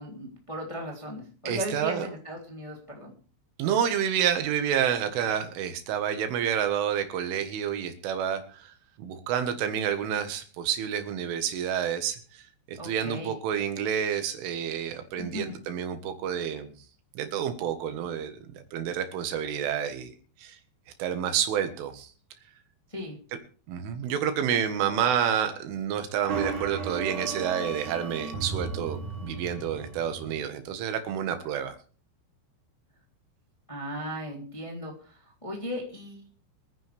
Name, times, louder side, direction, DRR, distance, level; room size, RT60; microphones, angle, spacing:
voice 1, 0.0-3.1 12.8-13.3 15.2-15.6 22.9-23.2 33.7-36.2, equal, 10° left, 0 dB, 2.2 m, -37 dB
voice 2, 1.5-2.1 3.6-12.4 12.7-16.7 17.2-20.1 20.4-20.6 21.0-22.1 23.7-31.8, right 9 dB, 85° right, 8 dB, 4.0 m, -29 dB
sound 1, 26.3-30.4, right 4 dB, 55° right, 3.7 m, -35 dB
25.5 x 9.7 x 3.5 m, 0.39 s
omnidirectional pair, 5.5 m